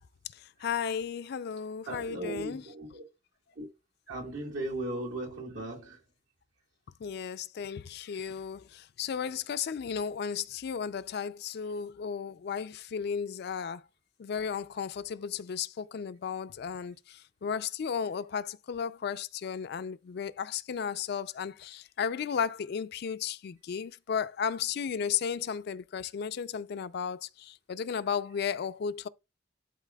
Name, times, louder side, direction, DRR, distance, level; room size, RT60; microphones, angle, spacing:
voice 1, 0.3-2.6 7.0-13.8 14.2-29.1, left 7 dB, 55° left, 0.4 m, -34 dB
voice 2, 1.9-3.0 3.6-3.7 4.1-6.0, right 1 dB, 80° right, 2.0 m, -37 dB
11.5 x 4.0 x 2.3 m
head